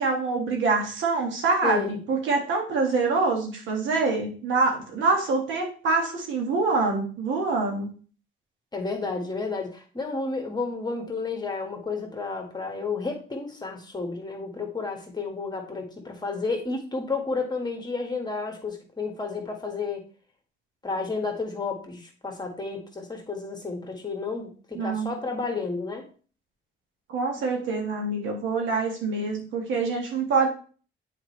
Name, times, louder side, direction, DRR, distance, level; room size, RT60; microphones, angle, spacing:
voice 1, 0.0-7.9 24.8-25.1 27.1-30.5, right 3 dB, 75° right, 1 dB, 2.0 m, -25 dB
voice 2, 1.6-2.0 8.7-20.1 20.8-26.1, left 4 dB, 20° left, 3 dB, 1.7 m, -31 dB
7.7 x 4.5 x 3.2 m, 0.40 s
cardioid pair, 90°, 20 cm